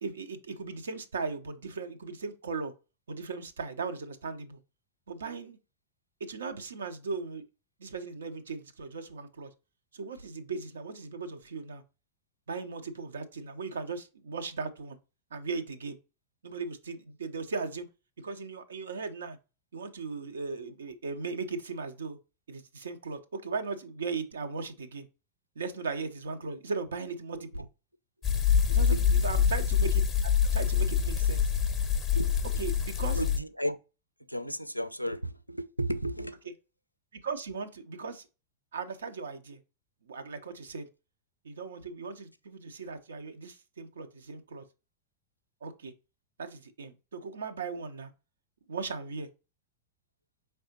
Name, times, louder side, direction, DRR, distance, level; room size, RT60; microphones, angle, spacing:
voice 1, 0.0-2.7 3.1-4.6 5.1-5.6 6.2-7.4 7.8-9.5 9.9-11.8 12.5-15.0 15.3-16.0 16.4-17.9 18.2-19.4 19.7-22.2 22.5-25.1 25.6-27.7 28.7-30.0 30.4-31.5 32.6-33.2 37.1-38.3 38.7-39.6 40.0-40.9 41.4-44.6 45.6-45.9 46.4-48.1 48.7-49.3, right 4 dB, 70° right, 0.5 m, -37 dB
voice 2, 27.3-27.6 28.3-29.0 32.2-32.4 33.1-33.8 34.3-36.4, right 1 dB, 90° left, 0.4 m, -34 dB
sound 1, 28.2-33.4, left 7 dB, 20° left, 0.6 m, -25 dB
4.7 x 3.3 x 2.8 m
figure-of-eight pair, 90°, 0 cm